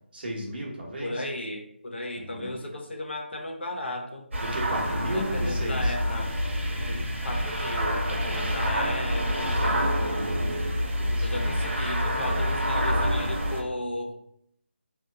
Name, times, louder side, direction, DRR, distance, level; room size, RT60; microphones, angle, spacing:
voice 1, 0.1-1.2 2.1-2.6 4.4-5.9 8.3-8.5 10.1-10.7 11.0-11.6, equal, 50° right, -2 dB, 1.0 m, -35 dB
voice 2, 1.0-4.3 5.1-6.4 6.9-9.9 11.2-14.2, left 1 dB, 65° left, 3 dB, 0.6 m, -35 dB
sound 1, 4.3-13.6, equal, 85° right, 0.8 m, -27 dB
2.7 x 2.2 x 3.4 m, 0.70 s
figure-of-eight pair, 175°, 7 cm